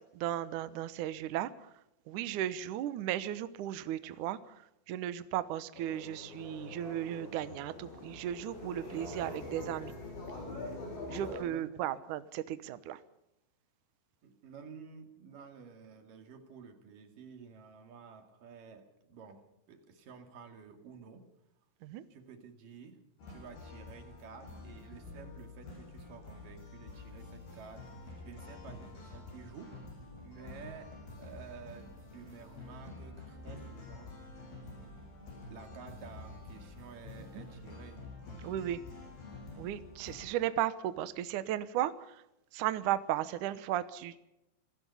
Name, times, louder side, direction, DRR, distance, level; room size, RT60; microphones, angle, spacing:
voice 1, 0.1-1.5 2.1-4.5 4.9-9.9 11.1-13.0 21.8-22.0 38.4-38.8 39.6-42.1 42.5-44.2, right 12 dB, 80° right, 13 dB, 1.8 m, -35 dB
sound 1, 5.7-11.4, left 2 dB, 85° left, 8.7 m, -44 dB
voice 2, 11.2-11.9 14.2-21.3 22.1-23.0 23.3-29.8 30.2-34.2 35.5-38.0 40.4-40.5, right 6 dB, 55° right, 6 dB, 3.7 m, -52 dB
sound 2, 23.2-40.3, left 2 dB, 60° left, 8.7 m, -48 dB
26.5 x 17.5 x 5.6 m, 0.89 s
omnidirectional pair, 5.0 m